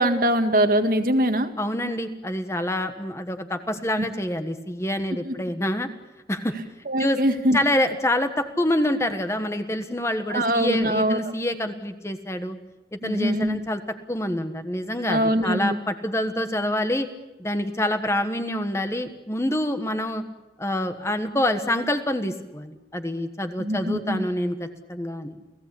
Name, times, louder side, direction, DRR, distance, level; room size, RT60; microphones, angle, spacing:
voice 1, 0.0-1.5 5.3-5.4 6.9-7.6 10.3-11.3 13.0-13.6 15.1-15.8 23.6-24.2, right 1 dB, 50° right, 7 dB, 1.9 m, -22 dB
voice 2, 1.6-5.9 6.3-6.5 7.0-7.2 7.5-12.6 12.9-13.8 14.1-17.1 17.4-20.2 20.6-25.4, left 1 dB, 15° left, 8 dB, 1.4 m, -26 dB
29.0 x 17.5 x 8.4 m, 1.0 s
head